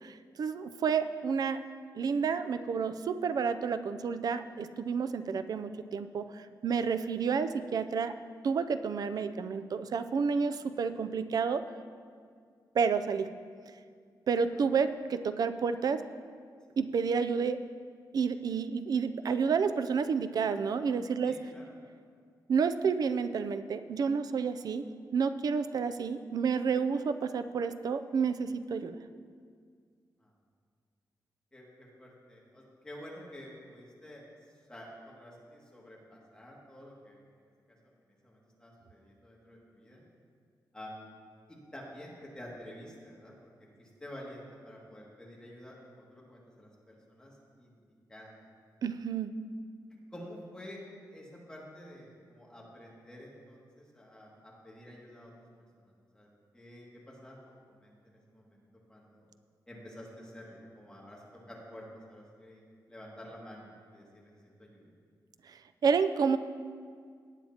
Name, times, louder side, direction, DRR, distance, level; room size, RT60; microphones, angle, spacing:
voice 1, 0.0-1.6 1.9-8.1 8.4-11.6 12.7-13.3 14.3-16.0 16.8-17.6 18.1-21.5 22.5-24.9 25.1-29.0 48.8-49.3 65.5-66.4, right 6 dB, 60° right, 11 dB, 0.5 m, -30 dB
voice 2, 21.2-21.7 31.5-34.2 34.7-37.2 38.2-40.0 40.7-41.1 41.5-43.3 43.8-47.8 48.1-48.4 50.1-50.8 51.1-55.3 55.8-56.3 56.5-58.6 58.9-59.3 59.7-61.2 61.5-62.6 62.9-64.2 64.6-64.8, equal, 10° left, -4 dB, 2.2 m, -49 dB
18.0 x 9.0 x 2.9 m, 2.1 s
wide cardioid pair, 140°, 7 cm